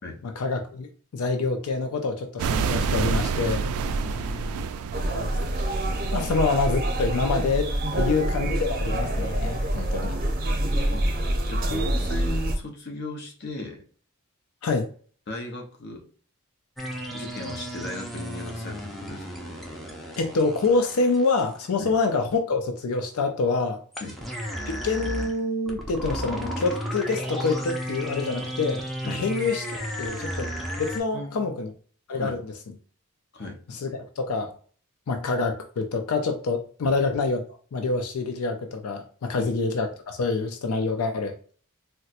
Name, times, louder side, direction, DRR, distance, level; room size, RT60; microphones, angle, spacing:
voice 1, 0.2-3.6 5.1-5.6 6.1-7.7 8.0-10.2 11.7-11.8 14.6-14.9 20.2-23.8 24.8-30.5 30.8-31.7 32.1-32.5 33.7-33.9 34.2-34.5 35.1-41.3, left 3 dB, 85° left, 5 dB, 0.5 m, -26 dB
sound 1, 2.4-7.6, right 5 dB, 85° right, 0.3 m, -29 dB
voice 2, 3.9-4.7 7.9-8.2 10.6-11.1 11.5-13.8 15.3-16.1 17.1-19.3 21.8-21.9 24.0-24.2 29.0-29.2 31.1-31.6 32.1-32.4 33.3-33.6 36.8-37.0 39.3-39.5, left 1 dB, 50° left, 2 dB, 0.7 m, -37 dB
sound 2, 4.9-12.6, right 1 dB, 40° right, 0.6 m, -26 dB
sound 3, 16.8-21.7 23.9-31.0, equal, ahead, 0.5 m, -33 dB
4.2 x 2.1 x 2.4 m, 0.43 s
head